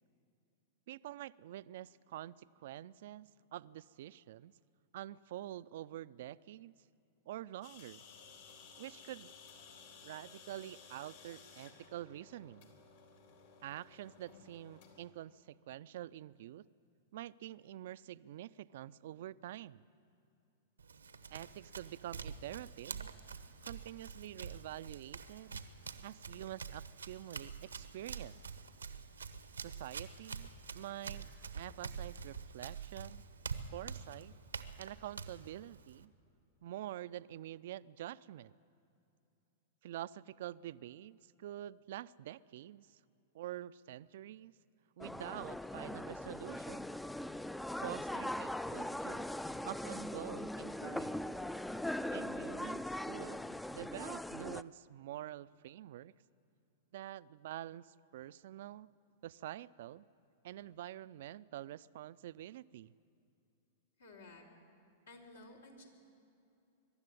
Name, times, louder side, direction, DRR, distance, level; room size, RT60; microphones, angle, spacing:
voice 1, 0.9-4.5 4.9-6.8 7.3-8.0 8.8-9.3 10.0-12.7 13.6-16.6 17.1-19.9 21.3-23.1 23.6-25.6 26.0-28.4 29.6-31.3 31.5-33.2 33.7-34.4 34.8-36.1 36.6-38.6 39.8-43.0 43.3-44.5 45.0-46.9 47.8-49.3 49.6-51.2 52.1-56.1 56.9-58.9 59.2-60.1 60.4-62.9, right 13 dB, 60° right, 18 dB, 0.4 m, -47 dB
sound 1, 7.6-15.1, left 5 dB, 60° left, 3.9 m, -57 dB
Run, 20.8-36.1, right 5 dB, 85° right, 0.9 m, -47 dB
sound 2, 45.0-54.6, left 1 dB, 5° left, 0.4 m, -40 dB
voice 2, 64.0-64.4 65.1-65.9, left 2 dB, 80° left, 1 dB, 4.1 m, -54 dB
23.0 x 12.0 x 9.8 m, 2.7 s
hypercardioid pair, 100°, 0 cm